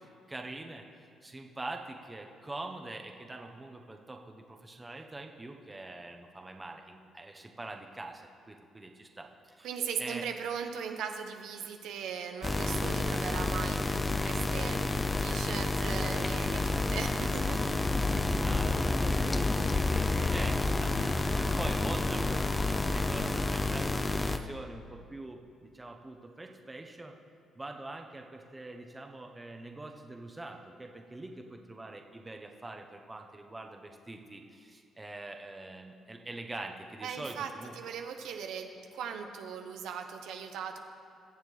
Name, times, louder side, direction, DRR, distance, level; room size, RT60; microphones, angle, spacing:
voice 1, 0.3-0.8 1.2-9.7 10.0-10.2 16.5-17.3 18.2-27.2 27.6-37.7, right 2 dB, 20° right, 3 dB, 1.0 m, -44 dB
voice 2, 9.6-17.6 37.0-37.5 37.8-40.8, right 7 dB, 85° right, 5 dB, 0.8 m, -39 dB
sound 1, 12.4-24.4, left 2 dB, 20° left, 0.6 m, -29 dB
21.0 x 7.4 x 3.3 m, 2.3 s
cardioid pair, 90°, 0 cm